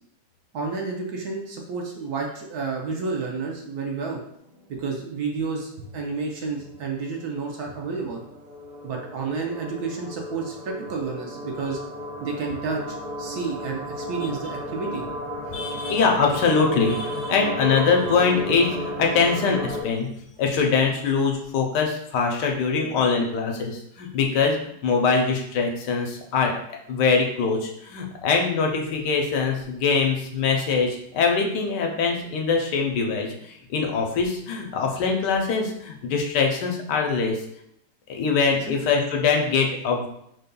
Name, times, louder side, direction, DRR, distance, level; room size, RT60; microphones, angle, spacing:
voice 1, 0.5-4.2 4.8-8.2 8.8-11.8 12.2-15.0 38.6-38.8, right 4 dB, 65° right, 0 dB, 1.1 m, -30 dB
sound 1, 4.5-5.1 5.4-5.5 5.7-19.8, equal, 85° right, 1.8 m, -34 dB
voice 2, 15.5-20.1 20.4-24.6 24.8-26.6 26.9-37.4 38.1-40.1, left 5 dB, 75° left, 2 dB, 1.3 m, -23 dB
5.2 x 3.9 x 2.2 m, 0.74 s
omnidirectional pair, 1.9 m